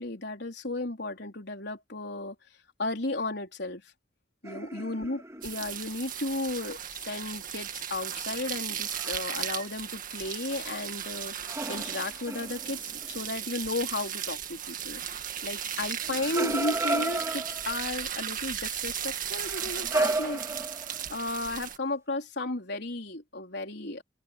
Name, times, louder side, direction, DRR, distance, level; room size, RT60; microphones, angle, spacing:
voice 1, 0.0-2.3 2.8-3.8 4.4-11.3 11.7-15.0 15.4-20.4 20.9-24.0, left 2 dB, 65° left, 4.2 m, -34 dB
sound 1, 4.4-5.9 8.9-9.4 11.4-13.2 16.0-17.9 19.4-21.1, right 2 dB, 15° right, 4.1 m, -33 dB
sound 2, 5.4-21.8, right 9 dB, 50° right, 1.8 m, -36 dB
open air
head